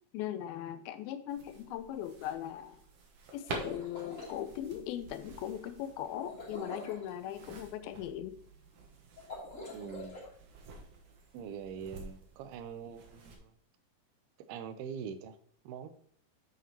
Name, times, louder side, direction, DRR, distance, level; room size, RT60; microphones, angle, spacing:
voice 1, 0.1-2.8 3.3-8.4, left 11 dB, 85° left, 11 dB, 2.4 m, -39 dB
sound 1, 1.3-13.4, right 4 dB, 65° right, 2.3 m, -49 dB
sound 2, 3.4-4.3 6.2-7.1 9.2-10.3, left 2 dB, 20° left, 2.7 m, -44 dB
voice 2, 9.7-10.2 11.3-13.5 14.5-15.4 15.6-15.9, right 7 dB, 85° right, 10 dB, 2.7 m, -43 dB
9.1 x 7.1 x 2.9 m, 0.63 s
omnidirectional pair, 4.4 m